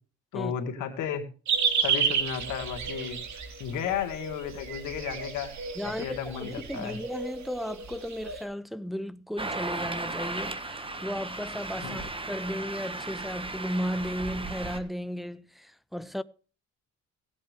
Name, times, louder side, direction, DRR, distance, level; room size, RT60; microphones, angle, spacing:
voice 1, 0.3-1.2 1.8-3.2 3.6-5.5 5.8-7.0 11.8-12.0, left 8 dB, 85° left, 2.2 m, -33 dB
sound 1, 1.5-8.4, right 6 dB, 65° right, 3.0 m, -32 dB
voice 2, 5.8-16.2, equal, ahead, 0.6 m, -35 dB
sound 2, 9.4-14.8, right 2 dB, 15° right, 1.5 m, -36 dB
17.5 x 8.7 x 3.3 m
cardioid pair, 90°, 30 cm